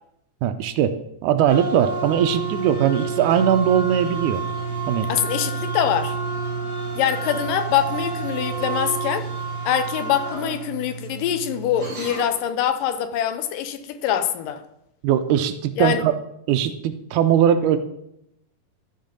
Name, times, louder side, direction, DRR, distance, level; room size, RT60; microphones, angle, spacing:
voice 1, 0.4-4.4 4.9-5.1 15.0-16.1 16.5-17.8, right 9 dB, 85° right, 2.1 m, -20 dB
sound 1, 1.5-12.4, right 4 dB, 30° right, 2.9 m, -29 dB
voice 2, 5.1-6.2 7.0-9.3 9.6-14.6 15.8-16.0, left 9 dB, 85° left, 2.4 m, -24 dB
12.5 x 5.5 x 5.2 m
omnidirectional pair, 3.8 m